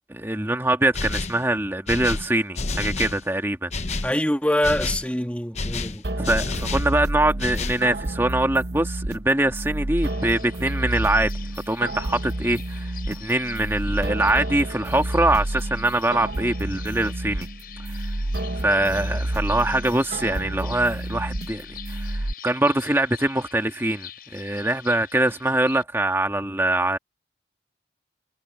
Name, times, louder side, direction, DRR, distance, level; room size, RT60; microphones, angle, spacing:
voice 1, 0.1-3.7 6.2-11.3 11.7-17.5 17.9-18.1 18.6-27.0, right 1 dB, 15° right, 1.7 m, -23 dB
sound 1, 0.9-1.4 1.9-3.2 3.7-4.1 4.6-5.1 5.5-6.9 7.4-7.9, left 3 dB, 40° left, 0.9 m, -29 dB
voice 2, 4.0-6.0, left 1 dB, 5° left, 1.8 m, -24 dB
sound 2, 6.0-22.3, right 1 dB, 65° right, 1.1 m, -30 dB
sound 3, 10.0-25.8, left 11 dB, 55° left, 7.0 m, -45 dB
head